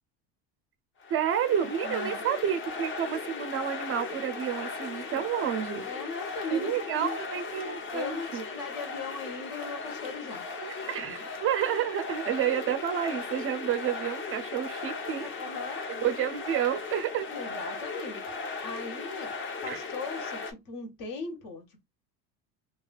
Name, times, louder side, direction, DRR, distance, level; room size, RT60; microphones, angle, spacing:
sound 1, 1.0-20.5, left 4 dB, 30° left, 0.8 m, -37 dB
voice 1, 1.1-5.9 6.5-8.4 10.6-15.3 15.9-17.3 19.7-19.8, right 9 dB, 35° right, 0.4 m, -30 dB
voice 2, 1.8-2.2 5.1-5.3 5.8-7.2 7.9-10.4 15.1-15.8 17.3-18.2 18.6-19.3 19.6-21.8, left 4 dB, 60° left, 1.3 m, -38 dB
3.1 x 2.4 x 2.2 m
cardioid pair, 125°, 38 cm